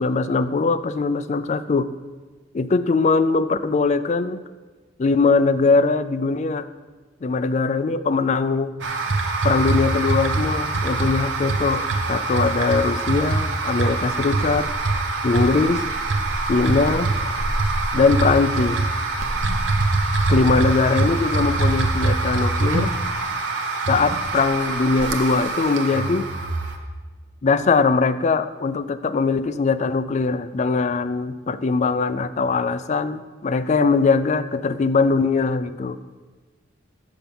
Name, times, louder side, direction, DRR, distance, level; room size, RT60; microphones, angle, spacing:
voice 1, 0.0-1.9 2.5-4.4 5.0-6.7 7.2-8.7 9.4-14.7 15.2-15.8 16.5-17.1 17.9-18.8 20.3-22.9 23.9-26.5 27.4-36.0, left 4 dB, 40° left, 13 dB, 0.3 m, -21 dB
sound 1, 8.8-26.8, right 3 dB, 85° right, 0.9 m, -23 dB
6.9 x 5.8 x 6.9 m, 1.3 s
head